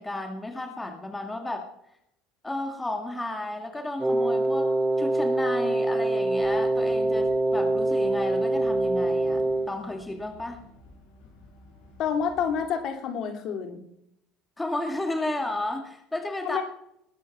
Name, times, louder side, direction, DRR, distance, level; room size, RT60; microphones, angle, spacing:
voice 1, 0.0-1.7 2.4-10.6 14.6-16.6, left 2 dB, 15° left, 4 dB, 2.4 m, -33 dB
Wind instrument woodwind instrument, 4.0-9.7, right 2 dB, 10° right, 1.3 m, -24 dB
sound 1, 6.3-12.7, left 2 dB, 80° left, 6.2 m, -53 dB
voice 2, 12.0-13.8 16.4-16.6, left 7 dB, 60° left, 5 dB, 3.2 m, -28 dB
20.0 x 8.3 x 4.7 m, 0.74 s
supercardioid pair, 85°, 0 cm